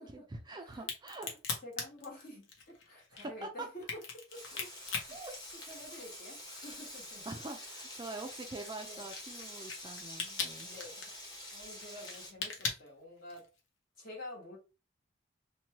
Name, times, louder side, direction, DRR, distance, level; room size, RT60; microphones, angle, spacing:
voice 1, 0.3-1.3 3.1-3.7 5.1-5.4 7.3-10.8, right 2 dB, 20° right, 0.3 m, -44 dB
Crack, 0.7-6.2 6.6-13.6, left 5 dB, 80° left, 0.8 m, -41 dB
voice 2, 1.6-4.0 4.3-5.2 5.7-7.3 8.8-9.0 10.6-11.1 11.5-13.5 14.0-14.6, left 1 dB, 45° left, 1.2 m, -49 dB
Frying (food), 4.3-12.3, left 1 dB, 20° left, 0.9 m, -47 dB
3.0 x 2.2 x 2.8 m
head